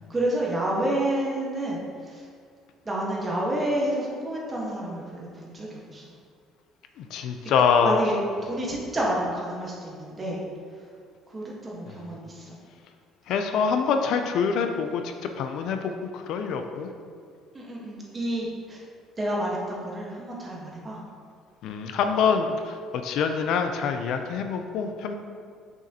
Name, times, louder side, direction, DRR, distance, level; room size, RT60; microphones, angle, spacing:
voice 1, 0.1-2.2 2.8-6.0 7.8-8.1 8.4-10.4 11.3-12.6 17.5-18.8 19.2-21.0, right 1 dB, 20° right, -4 dB, 1.3 m, -29 dB
voice 2, 7.0-8.0 13.3-16.9 21.6-25.1, left 6 dB, 65° left, 6 dB, 0.4 m, -25 dB
6.2 x 6.0 x 2.9 m, 2.2 s
cardioid pair, 145°, 0 cm